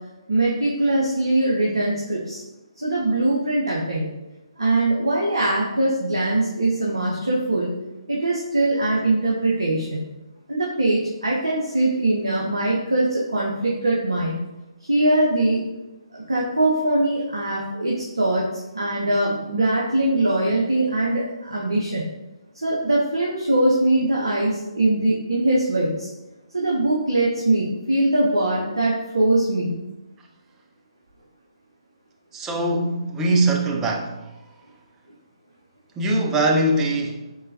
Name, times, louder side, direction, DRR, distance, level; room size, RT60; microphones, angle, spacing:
voice 1, 0.3-2.4 2.8-4.1 4.6-7.8 8.1-10.0 10.5-14.4 14.8-15.6 16.1-18.5 18.7-22.1 22.6-26.1 26.5-29.8, right 1 dB, 65° right, -4 dB, 0.7 m, -22 dB
voice 2, 32.3-34.3 36.0-37.3, right 1 dB, 10° right, 1 dB, 0.3 m, -22 dB
3.8 x 3.2 x 2.7 m, 1.0 s
figure-of-eight pair, 140°, 3 cm